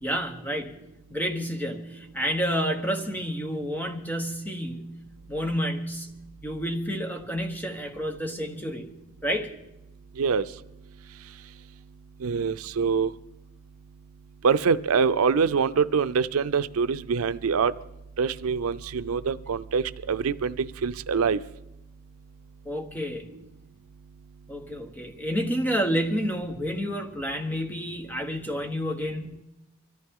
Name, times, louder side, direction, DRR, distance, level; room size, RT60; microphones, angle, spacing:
voice 1, 0.0-0.8 1.1-5.0 5.3-6.1 6.4-8.9 9.2-9.5 22.6-23.3 24.5-29.4, equal, 10° left, 1.1 m, -29 dB
voice 2, 12.2-13.1 14.4-17.7 18.2-21.4, right 5 dB, 85° right, 0.5 m, -24 dB
23.5 x 14.0 x 3.7 m
head